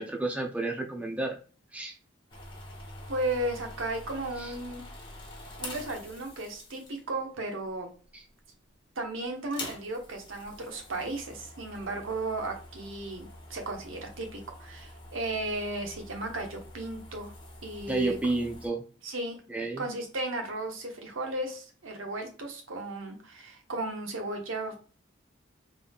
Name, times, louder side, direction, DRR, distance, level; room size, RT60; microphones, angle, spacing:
voice 1, 0.0-1.4 1.7-1.9 4.4-4.5 8.1-8.2 17.9-18.8 19.5-19.8, right 2 dB, 5° right, 2 dB, 0.4 m, -31 dB
sound 1, 2.3-7.2 8.0-8.4 8.7-8.8 9.4-18.7, left 2 dB, 25° left, 0.9 m, -46 dB
voice 2, 3.1-4.8 5.6-7.9 9.0-17.3 17.6-18.2 19.0-19.4 19.8-24.8, right 2 dB, 85° right, 3 dB, 1.1 m, -35 dB
3.7 x 3.5 x 2.3 m, 0.39 s
head